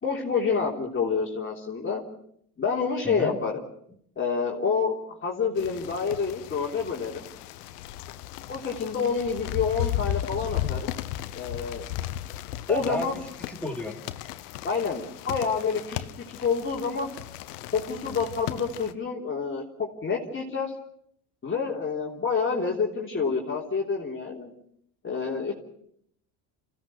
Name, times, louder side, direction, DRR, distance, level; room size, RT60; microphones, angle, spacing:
voice 1, 0.0-2.0 2.6-3.6 4.2-7.3 8.5-10.9 11.3-11.9 12.7-13.2 14.6-17.1 17.7-20.7 21.4-24.5 25.0-25.5, left 5 dB, 25° left, -2 dB, 3.4 m, -28 dB
voice 2, 3.0-3.4 12.7-13.1 13.5-14.0, left 1 dB, 5° left, 3 dB, 2.9 m, -32 dB
sound 1, 5.6-18.9, left 13 dB, 85° left, 1.1 m, -35 dB
26.5 x 16.5 x 6.0 m, 0.70 s
hypercardioid pair, 75°, 46 cm